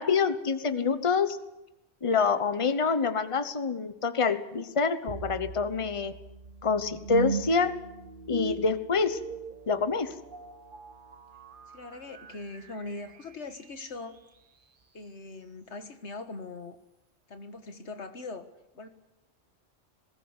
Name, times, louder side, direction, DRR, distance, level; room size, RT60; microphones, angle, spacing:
voice 1, 0.0-1.4 2.0-6.1 6.6-7.7 8.3-9.2 9.7-10.1, left 5 dB, 30° left, 11 dB, 1.1 m, -26 dB
sound 1, 5.1-14.2, right 4 dB, 50° right, 1.1 m, -39 dB
voice 2, 11.7-14.2 14.9-16.8 17.3-18.5 18.7-18.9, left 3 dB, 85° left, 8 dB, 1.9 m, -41 dB
20.5 x 18.0 x 8.1 m, 0.92 s
omnidirectional pair, 1.1 m